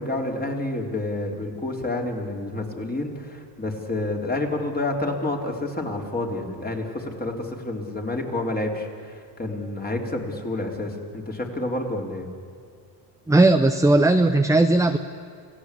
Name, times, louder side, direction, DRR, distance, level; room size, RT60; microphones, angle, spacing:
voice 1, 0.0-12.3, left 2 dB, 20° left, 1 dB, 3.9 m, -29 dB
voice 2, 13.3-15.0, right 2 dB, 5° right, 7 dB, 0.8 m, -17 dB
27.5 x 17.5 x 8.5 m, 2.3 s
cardioid pair, 105°, 49 cm